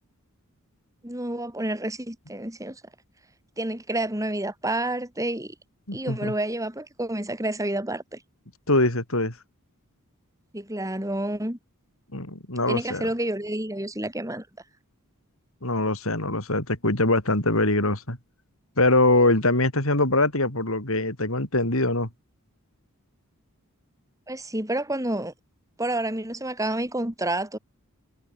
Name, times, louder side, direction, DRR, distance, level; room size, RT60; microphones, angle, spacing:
voice 1, 1.0-2.8 3.6-5.5 5.9-8.2 10.5-11.6 12.7-14.5 24.3-25.3 25.8-27.6, right 1 dB, 15° right, 4.7 m, -29 dB
voice 2, 5.9-6.3 8.7-9.3 12.1-13.1 15.6-18.2 18.8-22.1, left 2 dB, 65° left, 5.3 m, -23 dB
head